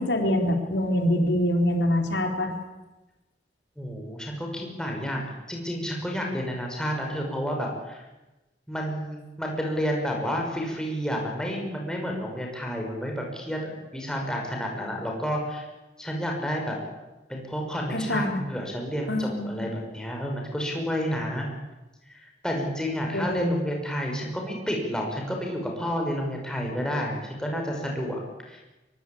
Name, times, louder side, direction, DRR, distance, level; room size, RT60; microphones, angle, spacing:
voice 1, 0.0-2.5 17.9-18.4 19.1-19.7 23.1-23.6, left 1 dB, 80° left, 3 dB, 4.0 m, -25 dB
voice 2, 3.8-8.0 8.7-15.7 16.0-16.8 17.3-21.5 22.1-28.6, equal, 5° left, 0 dB, 5.8 m, -30 dB
23.5 x 23.0 x 8.7 m, 1.1 s
head